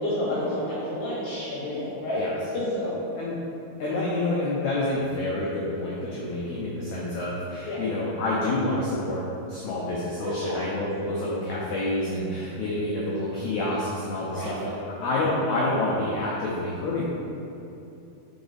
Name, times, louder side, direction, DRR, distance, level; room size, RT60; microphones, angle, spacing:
voice 1, 0.0-2.3 2.5-3.0 3.8-4.0 6.0-6.1 7.7-7.8 10.2-10.7 14.3-14.5 15.0-15.2, left 1 dB, 65° left, -8 dB, 2.1 m, -30 dB
voice 2, 3.8-14.7 15.0-17.0, left 2 dB, 85° left, -6 dB, 1.6 m, -28 dB
5.9 x 3.9 x 4.0 m, 2.8 s
omnidirectional pair, 4.2 m